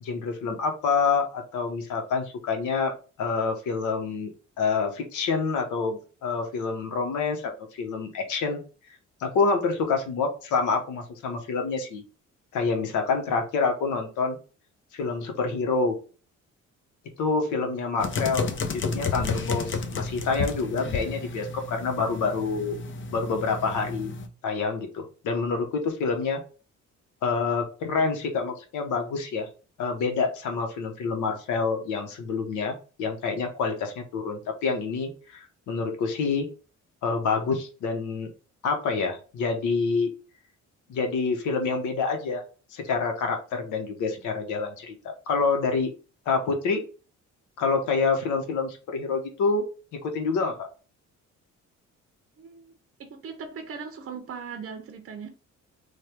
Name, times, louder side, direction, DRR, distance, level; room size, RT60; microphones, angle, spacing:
voice 1, 0.0-2.9 3.2-4.3 4.6-7.5 7.8-8.6 9.2-12.0 12.5-14.4 14.9-15.9 17.2-22.7 23.1-24.1 24.4-26.4 27.2-29.5 29.8-36.5 37.0-38.3 38.6-40.1 40.9-42.4 42.7-45.9 46.3-46.8 47.6-49.6 50.0-50.7, left 4 dB, 80° left, 0.9 m, -27 dB
sound 1, 18.0-24.3, left 4 dB, 40° left, 0.6 m, -32 dB
voice 2, 52.4-55.3, right 6 dB, 45° right, 0.6 m, -39 dB
3.2 x 2.2 x 4.3 m
cardioid pair, 90°, 30 cm